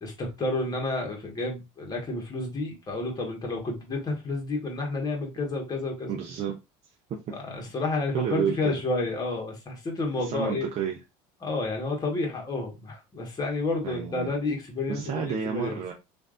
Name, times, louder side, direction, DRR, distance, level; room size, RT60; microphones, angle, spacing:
voice 1, 0.0-6.1 7.4-10.7 11.4-15.8, left 2 dB, 25° left, 1.4 m, -30 dB
voice 2, 6.1-6.6 7.1-7.4 8.1-8.8 10.2-11.0 13.8-14.3 14.9-15.9, right 7 dB, 45° right, 0.6 m, -30 dB
3.2 x 2.6 x 2.4 m
supercardioid pair, 105°, 16 cm